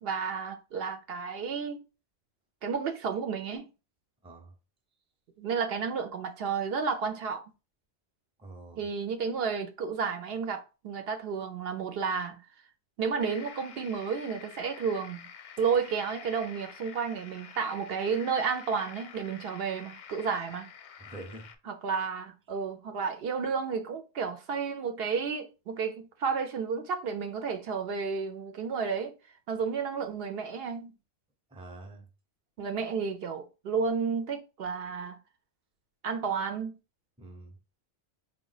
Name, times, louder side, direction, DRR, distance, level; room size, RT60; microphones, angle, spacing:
voice 1, 0.0-1.8 2.6-3.7 5.4-7.5 8.8-12.5 13.0-15.3 15.6-20.7 21.7-29.1 29.5-31.0 32.6-35.2 36.0-36.7, right 5 dB, 65° right, 0.7 m, -32 dB
voice 2, 4.2-4.5 8.4-8.8 21.0-21.5 31.5-32.1 37.2-37.6, right 2 dB, 5° right, 0.5 m, -46 dB
sound 1, 13.2-21.6, left 7 dB, 85° left, 0.9 m, -48 dB
4.5 x 2.2 x 3.9 m
omnidirectional pair, 1.1 m